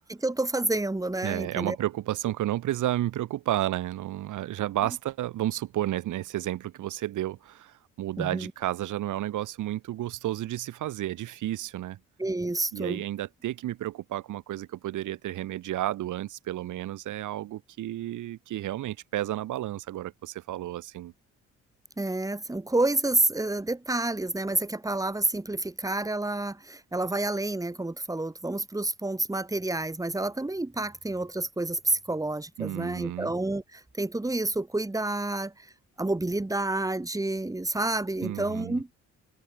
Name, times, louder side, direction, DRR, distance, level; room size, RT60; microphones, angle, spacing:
voice 1, 0.1-1.8 8.2-8.5 12.2-13.0 22.0-35.7 36.0-38.9, right 2 dB, 10° right, 2.9 m, -29 dB
voice 2, 1.2-12.0 12.7-21.1 32.6-33.3 38.2-38.8, right 14 dB, 80° right, 3.3 m, -32 dB
open air
cardioid pair, 90°, 30 cm